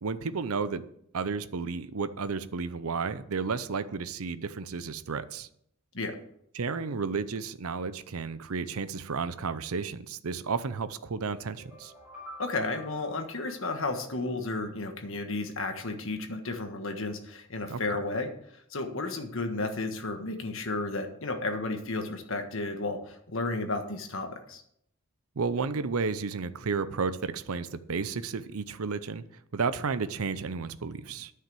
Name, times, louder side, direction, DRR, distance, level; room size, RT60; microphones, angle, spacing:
voice 1, 0.0-0.8 1.1-5.5 6.5-11.9 17.7-17.8 25.4-29.2 29.5-31.3, right 5 dB, 75° right, 0.6 m, -32 dB
sound 1, 11.5-14.5, left 1 dB, 5° right, 5.5 m, -49 dB
voice 2, 12.4-18.3 18.7-24.6, left 2 dB, 60° left, 1.5 m, -33 dB
10.5 x 5.8 x 7.7 m
head